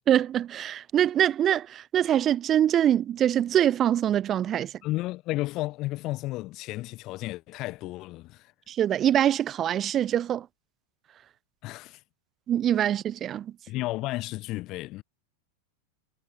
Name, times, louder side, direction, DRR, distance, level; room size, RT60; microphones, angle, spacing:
voice 1, 0.1-4.7 8.7-10.5 12.5-13.5, right 10 dB, 30° right, 0.4 m, -24 dB
voice 2, 4.8-8.5 11.6-12.0 13.7-15.0, left 18 dB, 40° left, 0.9 m, -33 dB
figure-of-eight pair, 90°, 0 cm